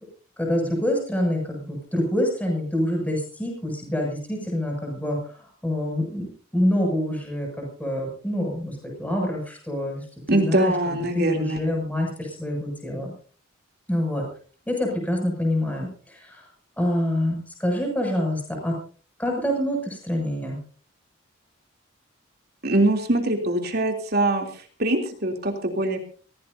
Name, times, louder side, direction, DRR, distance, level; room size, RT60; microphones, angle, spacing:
voice 1, 0.4-13.1 13.9-14.2 14.7-16.5 16.8-18.8 19.2-20.6, left 1 dB, 10° left, 0 dB, 7.0 m, -26 dB
voice 2, 10.3-11.6 22.6-26.0, right 1 dB, 50° right, 3 dB, 3.3 m, -23 dB
24.5 x 17.0 x 2.8 m, 0.41 s
head